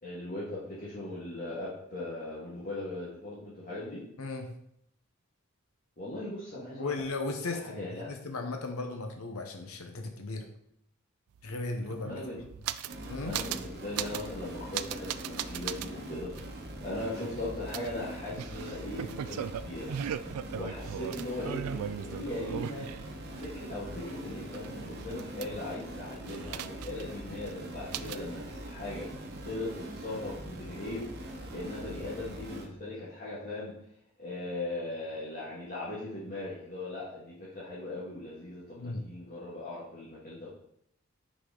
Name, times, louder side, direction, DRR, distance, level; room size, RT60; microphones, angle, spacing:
voice 1, 0.0-4.0 6.0-6.9 7.5-8.1 12.0-12.4 13.2-16.4 16.8-19.9 20.5-22.9 23.4-29.1 29.4-31.1 31.5-33.7 34.2-40.5, left 2 dB, 40° left, -8 dB, 1.7 m, -39 dB
voice 2, 4.2-4.5 6.8-10.5 11.4-12.2 13.1-13.3 38.8-39.0, left 3 dB, 80° left, 4 dB, 0.8 m, -36 dB
sound 1, 11.3-11.4 11.6-13.0 13.3-13.7 13.9-14.3 14.7-15.9 16.3-16.5 17.7-23.5 23.8-25.8 26.3-27.1 27.4-27.5 27.9-28.3, right 10 dB, 85° right, 0.3 m, -38 dB
sound 2, 12.9-32.7, right 1 dB, 50° right, 0.9 m, -42 dB
6.0 x 4.2 x 3.8 m, 0.74 s
head